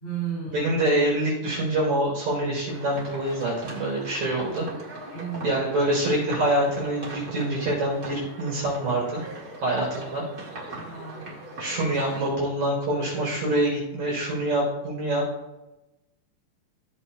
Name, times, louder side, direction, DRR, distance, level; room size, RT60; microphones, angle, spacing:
voice 1, 0.0-0.7 5.1-5.6 10.7-11.4, right 7 dB, 20° left, -8 dB, 2.7 m, -34 dB
voice 2, 0.5-4.7 5.4-9.2 9.6-10.2 11.6-15.2, right 1 dB, 55° right, -5 dB, 5.0 m, -25 dB
sound 1, 2.7-12.3, right 2 dB, 40° right, 1.5 m, -40 dB
16.0 x 7.1 x 2.3 m, 1.0 s
omnidirectional pair, 4.1 m